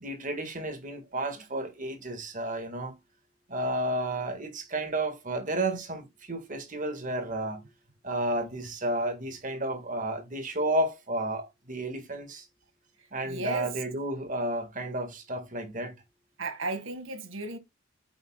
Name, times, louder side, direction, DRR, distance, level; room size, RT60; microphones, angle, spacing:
voice 1, 0.0-3.0 3.5-7.6 8.0-12.4 13.1-15.9, right 1 dB, 40° right, 1.7 m, -32 dB
voice 2, 13.3-13.8 16.4-17.6, right 2 dB, 70° right, 1.8 m, -34 dB
9.3 x 7.9 x 2.3 m
head